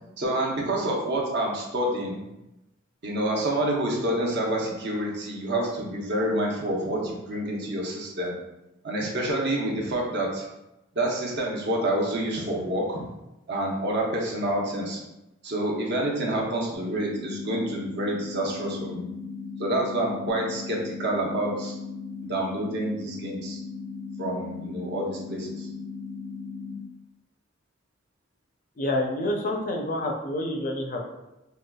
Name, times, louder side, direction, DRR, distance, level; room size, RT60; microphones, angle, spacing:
voice 1, 0.2-2.2 3.0-8.3 8.8-10.4 11.0-13.1 13.5-15.0 15.4-19.1 19.6-21.7 22.3-23.6 24.2-25.7, right 1 dB, 55° right, -2 dB, 0.8 m, -28 dB
sound 1, 16.7-26.7, left 4 dB, 15° right, 0.5 m, -37 dB
voice 2, 28.8-31.0, left 1 dB, 40° left, 1 dB, 0.5 m, -28 dB
4.8 x 2.3 x 2.2 m, 0.95 s
head